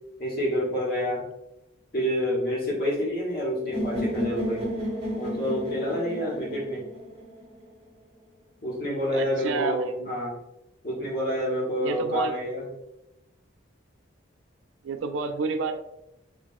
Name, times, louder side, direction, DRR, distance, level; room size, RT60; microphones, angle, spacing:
voice 1, 0.2-1.3 1.9-4.7 5.2-6.9 8.6-10.3 10.8-12.7, equal, 45° left, -5 dB, 1.2 m, -28 dB
sound 1, 3.7-7.7, equal, 30° right, 1.0 m, -32 dB
voice 2, 9.1-10.1 11.8-12.3 14.8-15.7, right 4 dB, 70° right, 7 dB, 0.4 m, -30 dB
3.5 x 3.2 x 2.5 m, 0.89 s
head